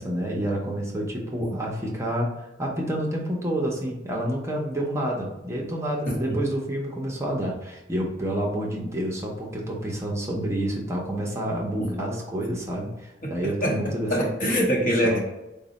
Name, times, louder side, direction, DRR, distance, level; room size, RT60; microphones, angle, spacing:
voice 1, 0.0-2.3 2.6-14.1 14.8-15.2, right 1 dB, 15° right, -2 dB, 0.6 m, -29 dB
voice 2, 6.1-6.4 11.8-11.9 13.2-15.2, equal, 50° left, -1 dB, 0.8 m, -25 dB
3.8 x 2.1 x 3.9 m, 0.95 s
head